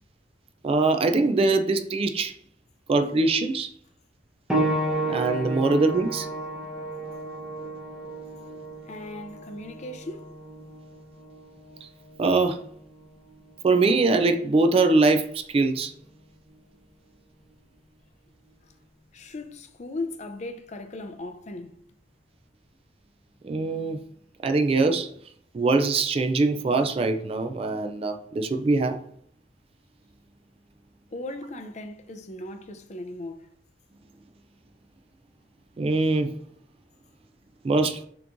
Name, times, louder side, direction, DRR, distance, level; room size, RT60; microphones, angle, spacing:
voice 1, 0.6-2.3 2.9-3.7 5.1-6.3 11.8-11.9 12.2-12.6 13.6-15.9 23.4-24.0 24.4-25.1 25.5-29.0 35.8-36.3 37.6-38.0, right 3 dB, 30° right, 0.3 m, -22 dB
sound 1, 4.5-14.7 15.7-15.8 16.5-16.6, right 1 dB, ahead, 0.8 m, -33 dB
voice 2, 8.8-10.3 18.6-18.7 19.1-21.8 31.1-33.5, left 2 dB, 40° left, 0.5 m, -37 dB
6.8 x 3.0 x 2.5 m
head